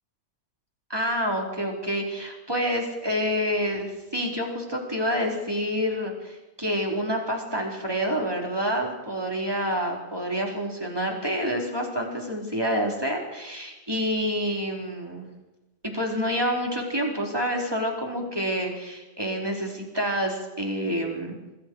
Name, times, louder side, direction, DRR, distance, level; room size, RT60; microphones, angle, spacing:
voice 1, 0.9-15.3 15.8-21.4, equal, 5° right, 0 dB, 4.2 m, -28 dB
27.5 x 21.5 x 4.9 m, 1.0 s
omnidirectional pair, 4.5 m